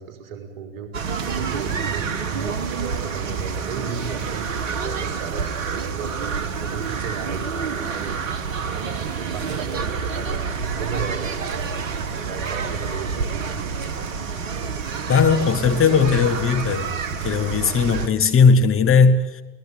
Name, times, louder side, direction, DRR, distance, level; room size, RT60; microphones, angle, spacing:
voice 1, 0.0-8.2 8.6-14.1, right 6 dB, 55° right, 5.0 m, -36 dB
sound 1, 0.9-18.1, right 5 dB, 75° right, 1.5 m, -28 dB
voice 2, 15.1-16.9 17.2-19.4, left 5 dB, 35° left, 1.8 m, -17 dB
22.5 x 20.0 x 9.7 m
figure-of-eight pair, 65°, 40 cm